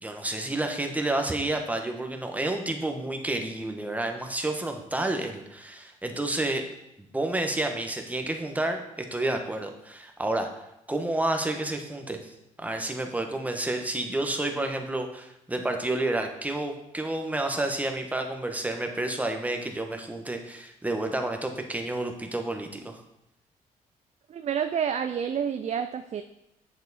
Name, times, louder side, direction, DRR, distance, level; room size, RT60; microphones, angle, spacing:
voice 1, 0.0-6.7 7.1-10.5 10.9-23.0, right 2 dB, 10° right, 4 dB, 1.3 m, -30 dB
voice 2, 24.3-26.2, right 8 dB, 50° right, 9 dB, 0.5 m, -29 dB
7.7 x 6.9 x 4.2 m, 0.83 s
cardioid pair, 85°, 15 cm